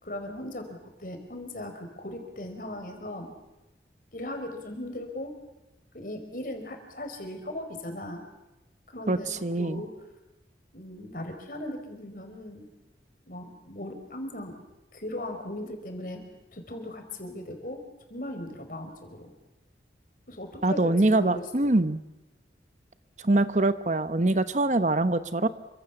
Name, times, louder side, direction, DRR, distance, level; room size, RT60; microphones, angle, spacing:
voice 1, 0.0-3.3 4.1-5.3 5.9-8.2 8.9-10.0 10.7-12.7 13.2-14.6 14.9-16.2 16.5-17.8 18.1-19.3 20.3-21.7, left 1 dB, 50° left, 5 dB, 4.8 m, -38 dB
voice 2, 9.1-9.8 20.6-22.0 23.2-25.5, right 2 dB, 40° right, 12 dB, 1.0 m, -24 dB
28.5 x 25.5 x 7.2 m, 1.0 s
head